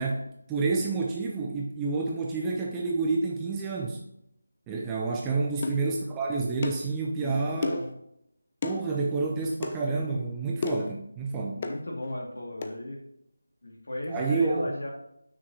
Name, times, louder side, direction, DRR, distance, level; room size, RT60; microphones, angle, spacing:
voice 1, 0.0-4.0 4.7-7.9 8.6-11.6 14.1-14.7, right 3 dB, 10° right, -1 dB, 0.6 m, -29 dB
sound 1, 5.6-5.8 6.6-6.9 7.6-7.9 8.6-8.8 9.6-9.8 10.6-10.9 11.6-11.8 12.6-12.8, left 3 dB, 30° left, 0.5 m, -32 dB
voice 2, 7.2-7.9 11.6-13.0 13.6-14.9, left 1 dB, 55° left, -1 dB, 2.2 m, -36 dB
7.0 x 6.3 x 2.8 m, 0.79 s
figure-of-eight pair, 160°, 0 cm